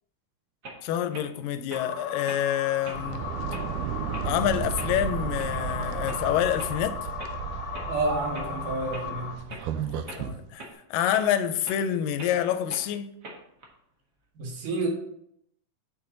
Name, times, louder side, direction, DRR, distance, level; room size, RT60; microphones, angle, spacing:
sound 1, 0.6-0.8 1.1-1.3 1.7-1.8 2.3-2.5 2.8-3.0 3.5-3.7 4.1-4.3 4.7-4.9 5.4-5.7 6.0-6.2 6.6-6.7 7.2-7.3 7.7-7.9 8.3-8.5 8.9-9.0 9.5-9.7 10.0-10.2 10.6-10.7 11.1-11.3 11.6-11.8 12.2-12.3 12.7-12.9 13.2-13.7, right 2 dB, 50° right, 1.2 m, -42 dB
voice 1, 0.8-3.3 4.2-7.1 9.6-13.1, left 10 dB, 80° left, 2.2 m, -27 dB
sound 2, 1.7-9.4, left 6 dB, 60° left, 1.5 m, -36 dB
sound 3, 2.8-10.4, right 9 dB, 80° right, 1.8 m, -34 dB
voice 2, 7.9-9.3 14.4-14.9, right 3 dB, 65° right, 3.3 m, -29 dB
8.3 x 7.2 x 3.8 m
omnidirectional pair, 4.1 m